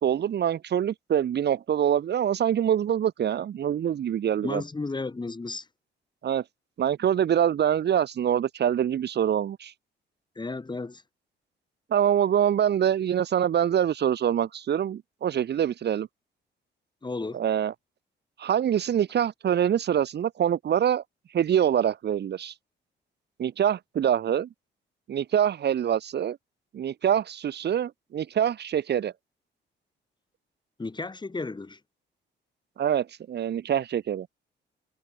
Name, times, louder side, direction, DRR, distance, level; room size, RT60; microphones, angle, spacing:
voice 1, 0.0-4.6 6.2-6.4 6.8-9.7 11.9-16.1 17.3-17.7 18.4-21.0 21.3-22.5 23.4-24.5 25.1-26.4 26.7-29.1 32.8-34.3, right 9 dB, 60° right, 1.5 m, -25 dB
voice 2, 4.4-5.7 10.4-11.0 17.0-17.4 30.8-31.8, left 3 dB, 20° left, 5.2 m, -33 dB
cardioid pair, 90°, 20 cm